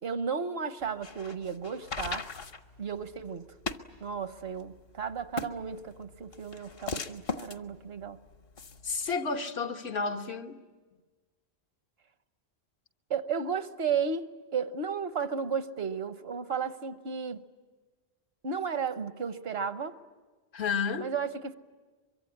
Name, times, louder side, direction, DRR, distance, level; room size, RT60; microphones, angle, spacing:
voice 1, 0.0-2.3 2.8-3.5 4.0-8.2 13.1-17.4 18.4-20.0 21.0-21.5, right 6 dB, 75° right, 1.2 m, -33 dB
sound 1, 0.8-9.2, left 4 dB, 70° left, 1.2 m, -40 dB
voice 2, 8.8-10.6 20.5-21.1, left 5 dB, 90° left, 1.5 m, -31 dB
23.5 x 23.5 x 9.8 m
omnidirectional pair, 1.0 m